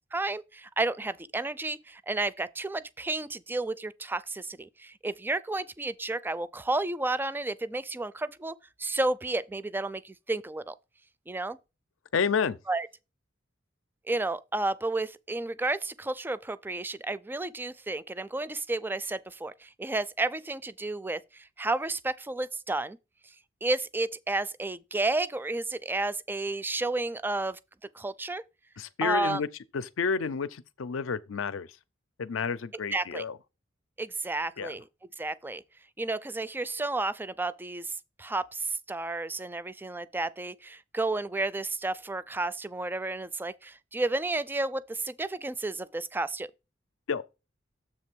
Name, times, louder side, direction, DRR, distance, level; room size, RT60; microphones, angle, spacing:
voice 1, 0.1-10.7 11.3-11.6 12.7-12.9 14.1-23.0 23.6-27.6 28.0-28.4 29.0-29.4 32.9-33.2 34.0-34.8 35.2-35.6 36.0-37.9 38.2-46.5, right 2 dB, 10° right, 0.3 m, -32 dB
voice 2, 12.1-12.6 28.8-29.5 29.7-31.7 32.2-33.3 34.6-34.7 47.1-47.2, left 5 dB, 85° left, 0.5 m, -30 dB
7.4 x 3.3 x 6.1 m
head